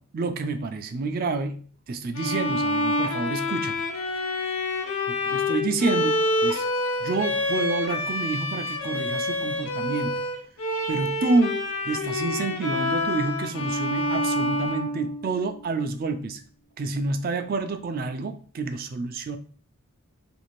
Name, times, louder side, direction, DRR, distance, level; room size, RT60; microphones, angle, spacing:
voice 1, 0.1-3.8 5.1-6.6 7.0-10.3 10.9-16.4 16.8-19.4, right 3 dB, 40° right, 0.3 m, -28 dB
Bowed string instrument, 2.1-15.6, left 1 dB, 65° left, 0.6 m, -27 dB
2.6 x 2.5 x 3.0 m
head